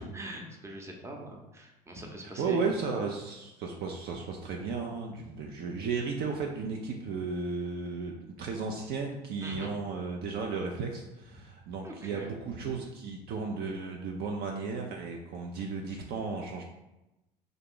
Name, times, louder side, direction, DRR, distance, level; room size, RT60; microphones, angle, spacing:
voice 1, 0.0-2.6 9.4-9.7 11.8-12.7, right 1 dB, 15° right, 0 dB, 0.7 m, -43 dB
voice 2, 2.2-16.6, right 4 dB, 50° right, 1 dB, 0.5 m, -34 dB
2.7 x 2.5 x 3.7 m, 0.98 s
hypercardioid pair, 70°, 21 cm